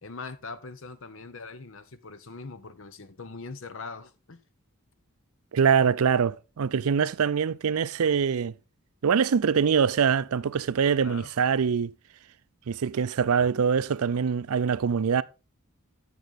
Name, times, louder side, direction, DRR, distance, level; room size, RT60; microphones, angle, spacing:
voice 1, 0.0-4.4 11.0-11.4, left 4 dB, 60° left, 0.8 m, -41 dB
voice 2, 5.5-8.5 9.0-11.9 12.7-15.2, right 6 dB, 80° right, 0.4 m, -24 dB
9.2 x 6.9 x 4.0 m
head